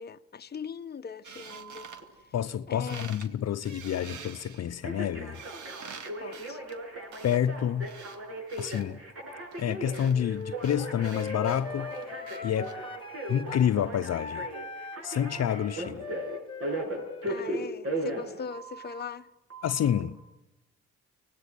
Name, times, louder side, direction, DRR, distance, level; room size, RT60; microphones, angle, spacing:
voice 1, 0.0-1.9 2.7-3.1 6.2-6.6 17.3-19.3, left 5 dB, 35° left, 1.0 m, -40 dB
sound 1, 1.2-2.6 2.9-3.3 3.6-8.8 9.5-12.8, right 6 dB, 75° right, 2.3 m, -47 dB
Telephone, 1.5-2.0 4.8-19.0 19.5-20.0, right 1 dB, 50° right, 7.5 m, -37 dB
voice 2, 2.3-5.4 7.2-7.9 8.6-9.0 9.6-11.9 12.4-12.8 13.3-14.5 15.0-16.0 19.6-20.2, left 9 dB, 60° left, 0.8 m, -28 dB
Wind instrument woodwind instrument, 10.1-13.7 14.0-17.8, left 4 dB, 15° left, 1.8 m, -40 dB
25.0 x 19.0 x 9.0 m
cardioid pair, 90°, 30 cm